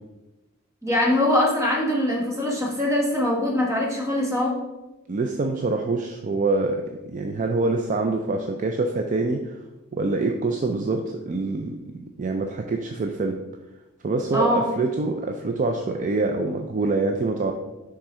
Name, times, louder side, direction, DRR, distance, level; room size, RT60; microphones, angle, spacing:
voice 1, 0.8-4.5 14.3-14.7, left 1 dB, 15° right, -2 dB, 1.2 m, -22 dB
voice 2, 5.1-6.8 7.1-9.6 9.9-13.4 14.0-17.5, right 3 dB, 35° right, 4 dB, 0.4 m, -25 dB
6.1 x 3.7 x 4.3 m, 1.1 s
head